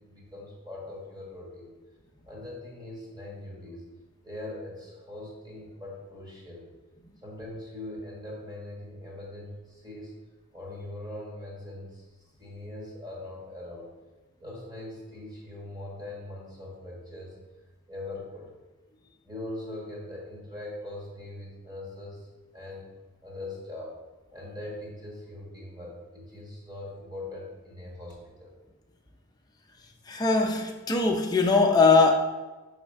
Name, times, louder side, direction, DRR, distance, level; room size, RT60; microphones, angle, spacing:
voice 1, 0.0-1.7 2.2-3.8 4.2-6.6 7.2-10.1 10.5-12.0 12.4-13.9 14.4-17.3 17.9-18.6 19.2-22.3 22.5-22.8 23.2-23.9 24.3-28.5, left 1 dB, 20° right, -3 dB, 1.5 m, -41 dB
voice 2, 30.1-32.1, left 4 dB, 20° left, 2 dB, 0.5 m, -21 dB
5.7 x 3.2 x 5.2 m, 1.2 s
head